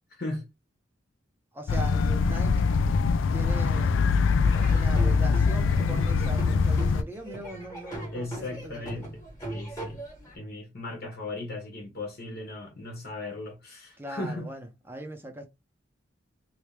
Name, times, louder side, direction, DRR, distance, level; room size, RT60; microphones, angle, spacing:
voice 1, 0.1-0.4 8.1-9.2 9.5-10.0 10.3-14.5, left 2 dB, 50° left, 1.1 m, -37 dB
voice 2, 1.5-2.6 2.9-4.1 4.7-9.1 14.0-15.5, right 1 dB, 10° right, 0.6 m, -40 dB
sound 1, 1.7-7.0, left 5 dB, 70° left, 0.3 m, -23 dB
Laughter / Drum, 4.4-10.4, right 1 dB, 15° left, 1.3 m, -39 dB
3.0 x 2.7 x 3.3 m
head